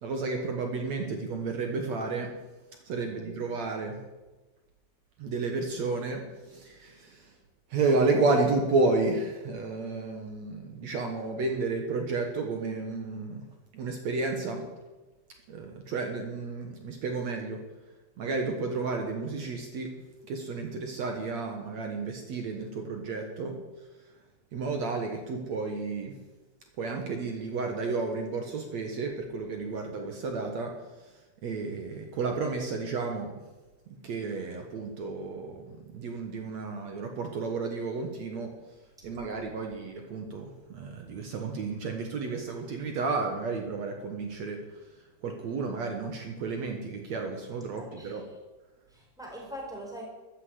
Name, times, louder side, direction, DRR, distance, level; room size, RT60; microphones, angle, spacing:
voice 1, 0.0-2.3 2.9-4.0 5.2-7.3 7.7-13.4 13.7-14.6 15.5-17.6 18.2-19.9 20.2-23.6 24.5-26.2 26.8-30.7 31.0-31.1 31.4-33.3 33.9-38.5 39.0-44.6 45.2-48.2, right 3 dB, 65° right, 3 dB, 1.8 m, -31 dB
voice 2, 42.2-42.6 47.8-48.2 48.9-50.1, equal, ahead, -2 dB, 3.9 m, -43 dB
13.0 x 9.8 x 8.3 m, 1.2 s
omnidirectional pair, 4.9 m